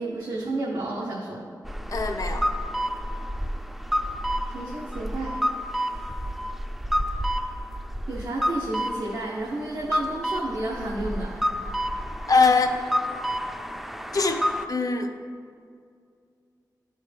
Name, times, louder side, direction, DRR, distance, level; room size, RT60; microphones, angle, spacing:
voice 1, 0.0-1.5 1.9-2.0 4.5-5.4 8.1-11.4, right 2 dB, 90° right, -4 dB, 0.9 m, -31 dB
sound 1, 1.6-14.7, equal, 5° right, 0.4 m, -29 dB
voice 2, 1.9-2.5 12.3-12.8 14.1-14.4 14.7-15.1, left 4 dB, 55° left, 4 dB, 0.7 m, -22 dB
12.0 x 4.4 x 3.4 m, 2.3 s
wide cardioid pair, 75°, 7 cm